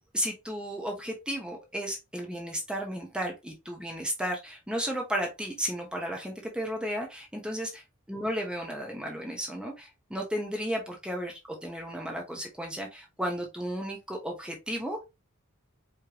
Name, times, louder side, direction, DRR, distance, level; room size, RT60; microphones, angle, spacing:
voice 1, 0.1-7.8 8.1-15.0, equal, 5° right, 1 dB, 1.0 m, -34 dB
4.9 x 3.3 x 2.9 m, 0.23 s
head